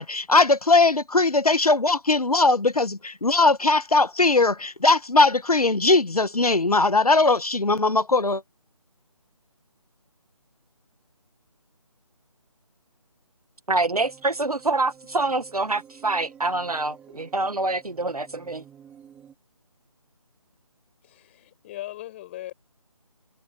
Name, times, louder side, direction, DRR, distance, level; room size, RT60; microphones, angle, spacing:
voice 1, 0.0-8.4, left 3 dB, 85° left, 1.7 m, -20 dB
sound 1, 13.7-19.4, right 8 dB, 5° right, 4.1 m, -51 dB
voice 2, 13.7-18.6, right 2 dB, 85° right, 1.8 m, -26 dB
voice 3, 21.0-22.5, left 14 dB, 20° left, 5.2 m, -39 dB
figure-of-eight pair, 160°, 19 cm